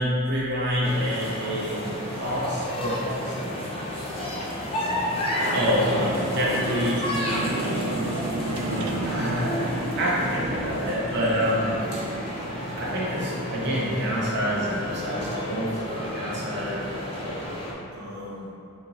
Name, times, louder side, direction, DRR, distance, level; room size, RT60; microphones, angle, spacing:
voice 1, 0.0-3.6 5.5-8.0 8.6-12.1 12.7-17.3 17.9-18.5, equal, 50° right, -6 dB, 0.7 m, -28 dB
sound 1, 0.8-17.7, left 1 dB, 25° left, 0.4 m, -31 dB
sound 2, 3.6-13.4, right 2 dB, 85° right, 0.3 m, -34 dB
sound 3, 5.3-7.1, equal, 15° right, 1.4 m, -35 dB
4.3 x 2.9 x 2.5 m, 2.7 s
head